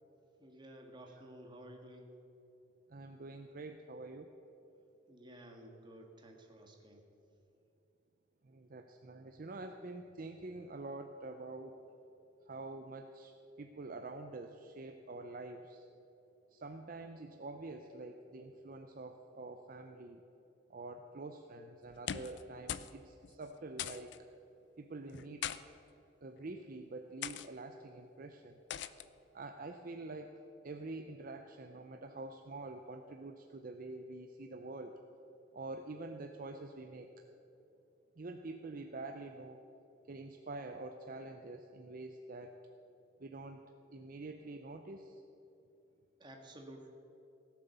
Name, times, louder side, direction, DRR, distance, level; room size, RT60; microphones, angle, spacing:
voice 1, 0.4-2.2 5.1-7.0 46.2-46.9, right 1 dB, 25° right, 2 dB, 1.6 m, -53 dB
voice 2, 2.9-4.3 8.4-11.8 12.5-15.9 16.5-20.2 20.7-24.1 24.8-25.5 26.2-28.6 29.3-30.3 30.6-34.9 35.5-37.1 38.2-39.6 40.1-42.5 43.2-43.6 43.9-45.2, right 2 dB, 50° right, 6 dB, 0.6 m, -46 dB
sound 1, 21.9-22.4 22.7-23.0 23.2-23.3 23.8-24.2 25.1-25.6 26.4-26.6 27.2-27.5 28.7-29.1, left 9 dB, 65° left, 0.5 m, -40 dB
17.0 x 7.7 x 6.8 m, 2.9 s
head